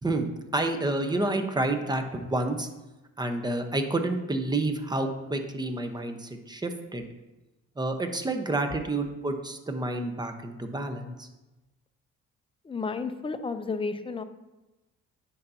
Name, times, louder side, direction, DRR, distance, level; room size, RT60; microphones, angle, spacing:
voice 1, 0.0-2.7 3.2-7.0 7.8-11.3, right 2 dB, 15° right, 6 dB, 0.8 m, -29 dB
voice 2, 12.6-14.2, left 4 dB, 20° left, 9 dB, 0.5 m, -32 dB
9.4 x 5.6 x 2.7 m, 1.0 s
cardioid pair, 90°, 30 cm